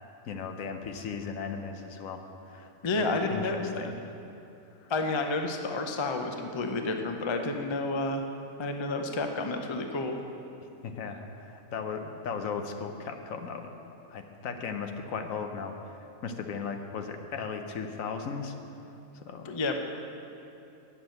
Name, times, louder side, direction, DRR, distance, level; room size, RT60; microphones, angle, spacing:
voice 1, 0.3-2.7 3.0-3.9 4.8-4.9 10.8-13.7 14.1-18.5 19.1-19.5, left 5 dB, 65° left, 5 dB, 1.1 m, -37 dB
voice 2, 2.8-3.9 4.9-8.2 8.6-10.2 19.4-19.8, left 2 dB, 45° left, 4 dB, 0.3 m, -30 dB
8.8 x 6.9 x 7.8 m, 2.8 s
omnidirectional pair, 1.6 m